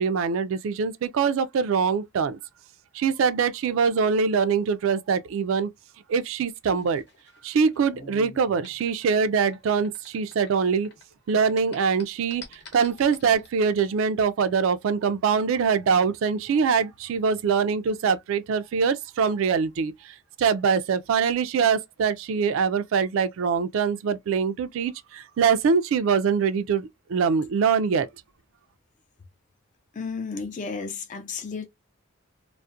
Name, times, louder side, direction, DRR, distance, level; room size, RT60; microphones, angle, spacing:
voice 1, 0.0-2.4 2.9-5.7 6.1-7.0 7.4-10.9 11.3-28.1, right 6 dB, 75° right, 0.3 m, -23 dB
sound 1, 6.7-11.0 11.3-13.5, left 2 dB, 55° left, 0.8 m, -46 dB
voice 2, 29.9-31.7, left 5 dB, 35° left, 0.4 m, -33 dB
2.4 x 2.0 x 2.5 m
head